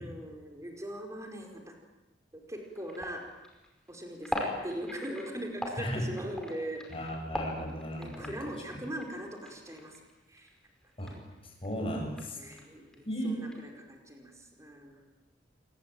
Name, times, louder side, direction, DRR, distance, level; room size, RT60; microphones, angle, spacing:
voice 1, 0.0-1.7 2.3-3.2 3.9-7.1 8.0-9.9 10.3-10.5 12.3-13.5 13.9-15.0, right 1 dB, 15° right, 2 dB, 5.1 m, -40 dB
sound 1, 2.5-11.2 11.5-13.7, left 1 dB, 5° left, 5.4 m, -41 dB
voice 2, 5.8-6.1 6.9-8.4 11.0-11.1 11.4-12.6 13.0-13.4, equal, 30° left, 1 dB, 7.9 m, -35 dB
28.0 x 22.0 x 9.2 m, 1.0 s
head